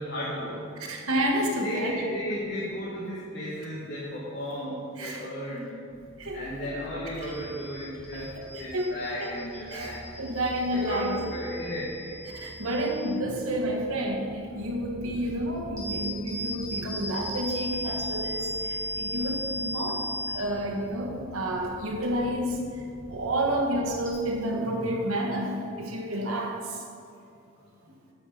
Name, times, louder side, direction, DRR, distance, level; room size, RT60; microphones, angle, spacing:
voice 1, 0.0-0.9 1.6-5.8 6.3-8.3 8.6-10.0 10.7-12.3, equal, 50° left, -7 dB, 1.8 m, -34 dB
voice 2, 0.8-2.0 5.0-5.3 6.2-6.7 7.1-7.3 8.1-9.4 9.7-11.2 12.3-22.6 23.1-26.8, right 1 dB, 85° right, 1 dB, 1.5 m, -30 dB
sound 1, 5.9-24.1, equal, 15° right, 2.2 m, -38 dB
9.9 x 5.5 x 6.8 m, 2.4 s
head